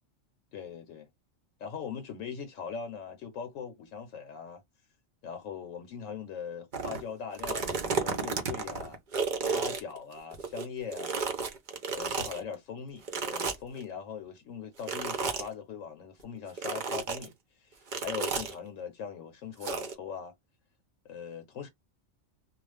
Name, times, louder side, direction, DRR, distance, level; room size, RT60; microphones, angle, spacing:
voice 1, 0.5-1.1 1.6-4.6 5.2-9.0 9.5-11.2 11.9-17.3 17.6-20.3 21.0-21.7, left 7 dB, 80° left, 1.1 m, -40 dB
sound 1, 6.7-7.0 7.3-10.7 10.9-12.4 13.1-13.8 14.8-15.5 16.6-17.3 17.9-18.5 19.6-19.9, right 5 dB, 45° right, 0.7 m, -32 dB
2.4 x 2.3 x 3.3 m
omnidirectional pair, 1.3 m